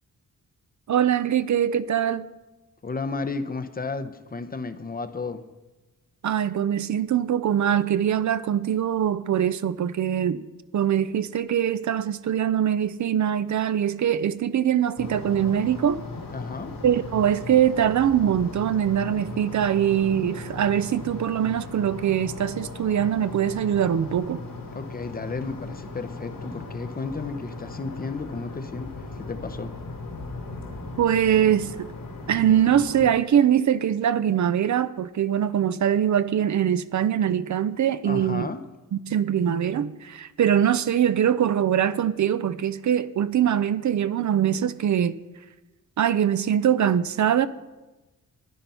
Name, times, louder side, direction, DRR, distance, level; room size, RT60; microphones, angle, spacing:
voice 1, 0.9-2.3 6.2-10.5 10.7-16.0 16.8-24.4 31.0-31.9 32.3-38.5 38.9-45.2 46.0-47.5, right 9 dB, 60° right, 0.6 m, -23 dB
voice 2, 2.8-5.4 16.3-16.8 24.7-29.7 38.0-38.6, left 4 dB, 30° left, 0.7 m, -33 dB
sound 1, 15.0-33.1, left 3 dB, 85° left, 3.2 m, -38 dB
13.0 x 10.5 x 5.6 m
wide cardioid pair, 180°, 33 cm